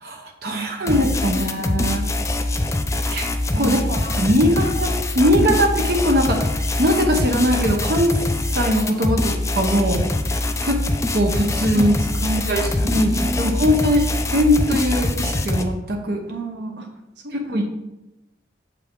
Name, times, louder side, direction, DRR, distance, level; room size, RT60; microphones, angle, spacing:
voice 1, 0.0-2.1 3.1-3.3 3.6-6.5 6.8-8.1 8.5-10.0 10.6-10.8 11.1-11.9 12.5-12.6 12.9-16.2 17.3-17.6, equal, 60° right, 2 dB, 0.9 m, -20 dB
voice 2, 0.5-1.4 3.5-3.8 4.6-5.2 11.7-13.9 16.3-16.9 17.2-17.6, right 1 dB, 85° right, 3 dB, 0.9 m, -32 dB
sound 1, 0.9-15.6, left 2 dB, 15° left, 0.4 m, -23 dB
7.2 x 5.0 x 3.7 m, 0.95 s
head